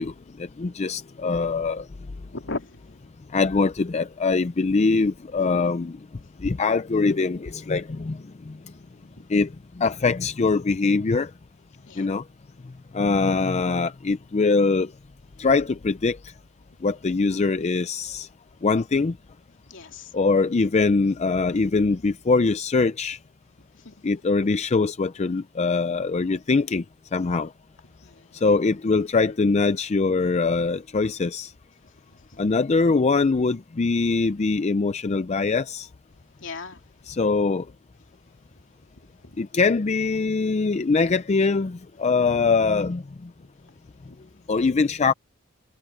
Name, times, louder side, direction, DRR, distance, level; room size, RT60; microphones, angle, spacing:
voice 1, 0.0-1.9 3.3-6.0 6.4-8.6 9.3-11.3 12.0-12.2 12.9-14.9 15.4-16.3 16.8-18.3 18.6-19.2 20.1-23.2 24.0-26.8 27.1-27.5 28.3-31.5 32.4-35.9 37.1-37.7 39.4-43.3 44.5-45.1, left 4 dB, 35° left, 0.4 m, -23 dB
voice 2, 2.3-2.8 8.7-8.8 9.1-9.2 11.9-12.1 19.7-20.2 23.7-23.9 26.2-26.4 28.0-28.5 32.1-32.4 36.4-36.8 39.2-39.4 44.1-44.2, left 3 dB, 65° left, 2.9 m, -38 dB
head